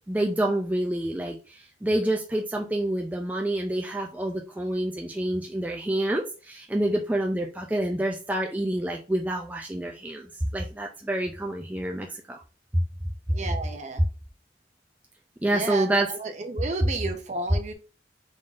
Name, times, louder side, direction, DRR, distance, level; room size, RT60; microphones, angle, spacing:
voice 1, 0.1-12.4 15.4-16.1, right 1 dB, 10° right, 1 dB, 0.3 m, -28 dB
voice 2, 13.3-14.0 15.5-17.7, right 3 dB, 40° right, 5 dB, 0.7 m, -32 dB
3.7 x 3.7 x 2.4 m, 0.34 s
head